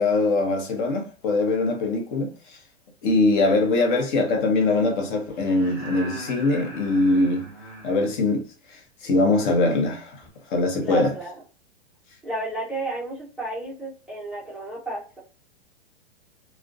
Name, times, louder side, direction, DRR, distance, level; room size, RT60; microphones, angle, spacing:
voice 1, 0.0-2.6 3.0-7.5 7.8-8.4 8.7-10.2 10.5-11.1, left 2 dB, 50° left, 0.8 m, -22 dB
sound 1, 5.3-8.2 10.2-10.3, equal, 20° left, 1.1 m, -39 dB
voice 2, 10.8-11.4 12.2-15.2, right 2 dB, ahead, 0.3 m, -32 dB
2.3 x 2.1 x 2.5 m
hypercardioid pair, 135°, 32 cm